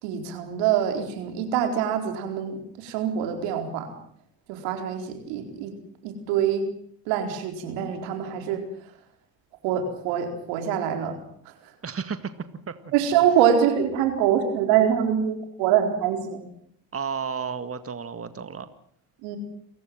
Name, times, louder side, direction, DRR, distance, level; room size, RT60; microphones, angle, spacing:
voice 1, 0.0-3.9 4.5-5.7 6.0-6.6 7.1-8.7 9.6-11.2 12.9-16.5 19.2-19.4, right 9 dB, 85° right, 6 dB, 4.3 m, -24 dB
voice 2, 11.8-12.3 12.7-12.9 16.9-18.7, right 6 dB, 30° right, 11 dB, 2.0 m, -32 dB
29.0 x 15.0 x 7.7 m, 0.65 s
supercardioid pair, 65°, 43 cm